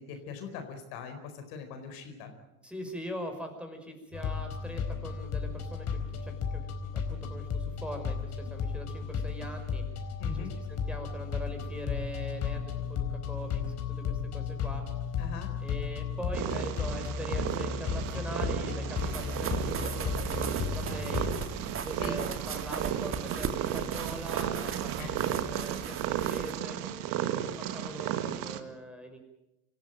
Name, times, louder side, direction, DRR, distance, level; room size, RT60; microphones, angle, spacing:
voice 1, 0.0-2.3 10.2-10.5 15.2-15.5 22.0-22.2 25.0-25.2, left 5 dB, 55° left, 6 dB, 4.6 m, -41 dB
voice 2, 2.6-5.9 6.2-9.8 10.3-12.6 12.9-13.6 14.1-14.8 15.6-21.3 21.8-29.2, equal, 5° right, 4 dB, 5.6 m, -42 dB
sound 1, 4.1-21.4, left 6 dB, 35° left, 4.3 m, -34 dB
Purr, 16.3-28.6, right 11 dB, 50° right, 2.0 m, -34 dB
sound 2, 19.0-26.5, right 6 dB, 30° right, 2.5 m, -38 dB
25.5 x 15.0 x 9.1 m, 0.91 s
hypercardioid pair, 85°, 42 cm